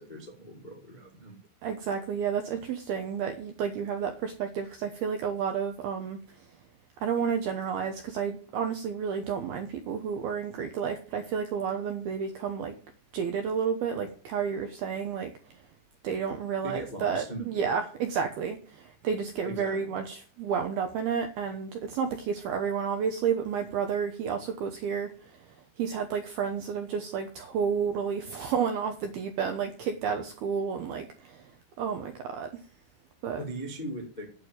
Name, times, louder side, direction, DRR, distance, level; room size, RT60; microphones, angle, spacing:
voice 1, 0.0-1.4 16.6-18.0 19.4-20.0 33.4-34.3, right 1 dB, 70° left, 0 dB, 0.4 m, -40 dB
voice 2, 1.6-6.5 7.0-12.8 13.1-15.6 16.0-31.5 31.8-32.5 33.2-33.4, right 7 dB, 75° right, 6 dB, 2.3 m, -31 dB
9.0 x 8.0 x 8.7 m, 0.41 s
omnidirectional pair, 5.6 m